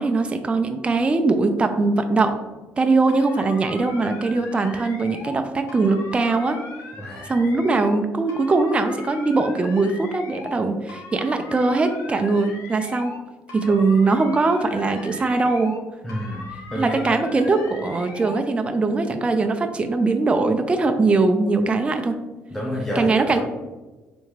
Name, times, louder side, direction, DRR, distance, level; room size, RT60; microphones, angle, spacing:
voice 1, 0.0-2.3 2.8-6.6 7.3-13.1 13.5-15.7 16.8-22.1 23.0-23.4, right 3 dB, 25° right, 6 dB, 0.4 m, -21 dB
sound 1, 3.1-5.4 5.7-8.0 8.3-10.6 10.9-13.2 13.5-15.8 16.1-18.4, left 3 dB, 80° left, 0.7 m, -39 dB
voice 2, 7.0-7.3 13.7-13.8 16.0-17.0 22.5-23.1, left 1 dB, 5° left, -5 dB, 0.9 m, -29 dB
4.3 x 3.4 x 3.2 m, 1.2 s
cardioid pair, 80°, 5 cm